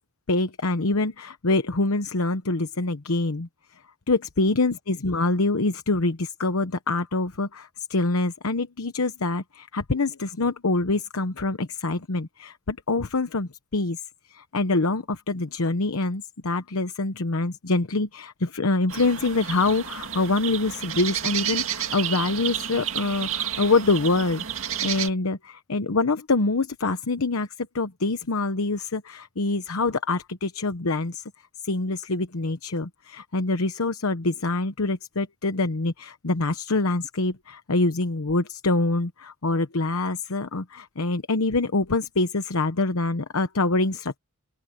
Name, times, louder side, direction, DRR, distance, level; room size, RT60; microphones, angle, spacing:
voice 1, 0.3-3.5 4.1-14.0 14.3-31.2 31.6-44.2, left 3 dB, 85° left, 1.0 m, -25 dB
sound 1, 18.9-25.1, right 10 dB, 70° right, 2.1 m, -31 dB
open air
head